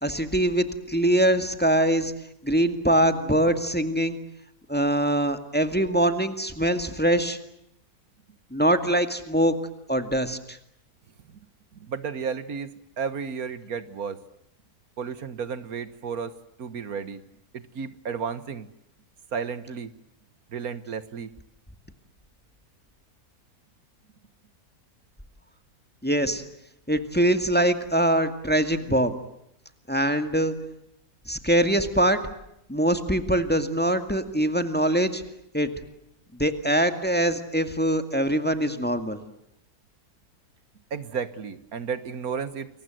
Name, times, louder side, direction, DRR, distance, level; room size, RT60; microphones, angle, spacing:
voice 1, 0.0-2.1 2.4-4.2 4.7-7.4 8.5-9.5 9.9-10.6 26.0-26.4 26.9-29.2 29.9-30.5 31.3-32.2 32.7-35.2 35.5-35.7 36.4-39.2, right 1 dB, 5° left, 8 dB, 2.0 m, -23 dB
voice 2, 11.7-12.7 13.0-14.2 15.0-16.3 16.6-17.2 17.5-18.7 19.3-19.9 20.5-21.3 40.9-42.7, right 6 dB, 70° right, 13 dB, 1.7 m, -32 dB
29.5 x 23.5 x 7.7 m, 0.79 s
omnidirectional pair, 1.6 m